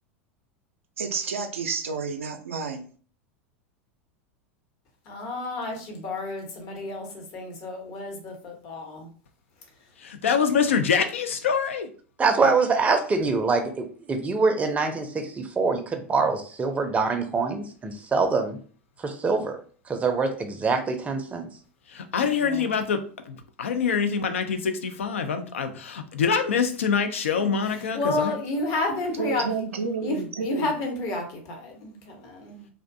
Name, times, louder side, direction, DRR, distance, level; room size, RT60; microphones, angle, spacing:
voice 1, 1.0-2.9 29.2-30.8, right 5 dB, 85° right, 4 dB, 0.4 m, -30 dB
voice 2, 5.1-9.1 22.2-22.7 27.4-27.5 27.9-29.6 30.0-32.7, left 2 dB, 55° left, 2 dB, 0.9 m, -31 dB
voice 3, 10.0-11.9 12.4-12.5 21.9-23.0 23.3-28.4, left 6 dB, 80° left, 7 dB, 0.4 m, -25 dB
voice 4, 12.2-18.6 19.0-19.6 19.9-21.5, right 4 dB, 20° right, 5 dB, 0.5 m, -24 dB
2.5 x 2.1 x 2.6 m, 0.42 s
hypercardioid pair, 90°, 7 cm